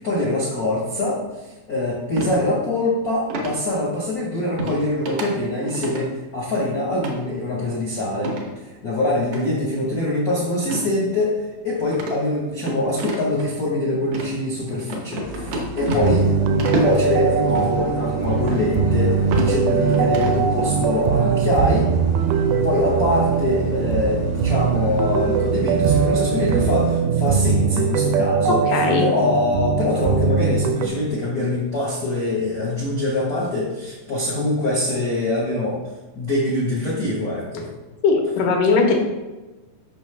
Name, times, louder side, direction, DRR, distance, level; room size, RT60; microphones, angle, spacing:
voice 1, 0.0-8.3 8.6-11.4 11.6-21.9 22.6-28.6 29.0-35.8 36.1-37.7, left 2 dB, 70° left, -5 dB, 0.8 m, -24 dB
sound 1, 2.2-2.4 3.3-3.6 4.6-4.8 5.0-5.3 5.6-6.0 7.0-7.2 8.2-8.5 9.3-9.4 10.6-10.9 11.2-11.3 11.9-13.4 14.0-14.3 14.9-16.3 16.6-17.0 17.5-17.7 18.5-18.6 19.1-19.6 19.9-20.4, right 1 dB, 65° right, 1.4 m, -27 dB
sound 2, 15.2-27.0, left 2 dB, 35° left, 0.6 m, -34 dB
sound 3, 16.0-30.9, right 6 dB, 90° right, 2.2 m, -21 dB
voice 2, 28.7-29.1 38.0-38.9, left 4 dB, 90° left, 2 dB, 2.5 m, -18 dB
5.9 x 5.5 x 3.3 m, 1.2 s
omnidirectional pair, 3.6 m